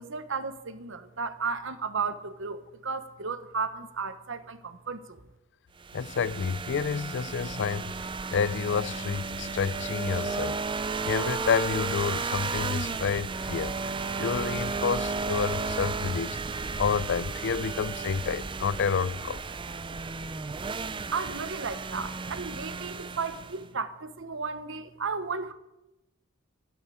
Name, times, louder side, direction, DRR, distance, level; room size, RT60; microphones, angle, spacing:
voice 1, 0.0-5.2 21.1-25.5, right 5 dB, 60° right, 1.1 m, -34 dB
sound 1, 5.8-23.7, right 4 dB, 25° right, 0.5 m, -33 dB
voice 2, 5.9-7.9 8.3-10.6 11.0-13.7 14.2-16.4 16.8-19.4, left 6 dB, 55° left, 0.4 m, -29 dB
13.0 x 9.9 x 8.6 m
head